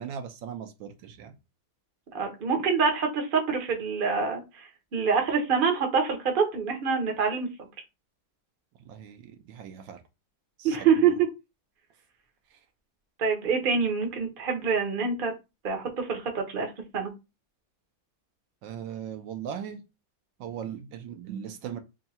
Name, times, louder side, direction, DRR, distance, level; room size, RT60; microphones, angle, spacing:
voice 1, 0.0-1.3 8.9-10.0 10.6-11.1 12.5-12.6 18.6-19.8 20.4-21.8, right 8 dB, 75° right, 1.2 m, -39 dB
voice 2, 2.1-4.7 4.9-7.7 10.6-11.1 13.2-15.3 15.6-17.1, right 5 dB, 40° right, 0.7 m, -26 dB
3.6 x 2.3 x 4.1 m
omnidirectional pair, 2.2 m